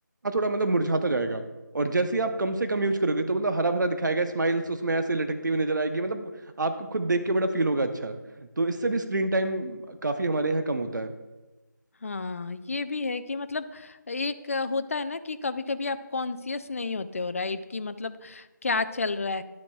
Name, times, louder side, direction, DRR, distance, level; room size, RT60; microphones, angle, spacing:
voice 1, 0.2-1.4 1.7-6.3 6.6-11.1, right 2 dB, 65° right, 7 dB, 0.8 m, -26 dB
voice 2, 12.0-19.4, left 3 dB, 45° left, 11 dB, 0.5 m, -31 dB
11.5 x 7.5 x 2.3 m, 1.1 s
figure-of-eight pair, 165°, 11 cm